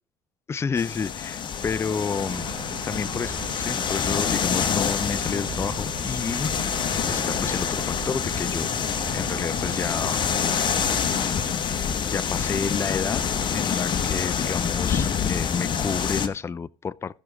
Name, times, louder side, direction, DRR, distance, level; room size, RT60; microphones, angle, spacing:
voice 1, 0.5-2.5 2.9-6.5 7.1-8.7 9.1-10.3 12.1-13.2 13.5-17.2, left 5 dB, 25° left, 0.4 m, -30 dB
sound 1, 0.8-16.3, left 7 dB, 45° left, 1.2 m, -26 dB
sound 2, 2.2-11.5, right 11 dB, 55° right, 1.6 m, -40 dB
16.5 x 6.1 x 3.5 m
hypercardioid pair, 65°, 11 cm